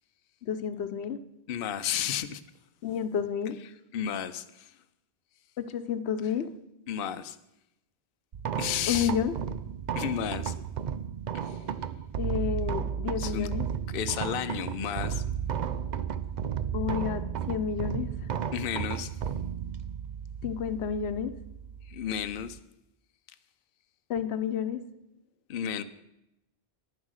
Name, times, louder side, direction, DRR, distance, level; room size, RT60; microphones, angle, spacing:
voice 1, 0.4-1.2 2.8-3.6 5.6-6.5 8.9-9.4 12.2-13.7 16.7-18.1 20.4-21.3 24.1-24.8, left 8 dB, 80° left, 1.0 m, -30 dB
voice 2, 1.5-2.4 3.9-4.7 6.9-7.4 8.6-9.1 9.9-10.5 11.3-11.6 13.2-13.5 13.9-15.2 18.5-19.1 21.8-22.6 25.5-25.8, left 9 dB, 65° left, 0.8 m, -32 dB
sound 1, 8.3-22.6, right 8 dB, 55° right, 0.6 m, -34 dB
11.0 x 9.7 x 6.4 m
omnidirectional pair, 1.1 m